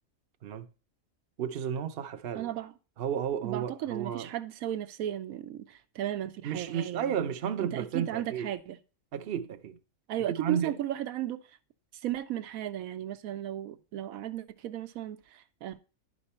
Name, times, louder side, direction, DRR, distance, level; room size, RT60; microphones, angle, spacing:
voice 1, 1.4-2.5 3.0-4.3 6.4-8.5 9.1-9.8 10.4-10.8, right 8 dB, 50° right, 0.8 m, -33 dB
voice 2, 2.3-2.7 3.4-7.2 7.6-8.8 10.1-11.6 11.9-15.8, right 12 dB, 85° right, 1.1 m, -35 dB
10.5 x 5.3 x 4.2 m
omnidirectional pair, 1.4 m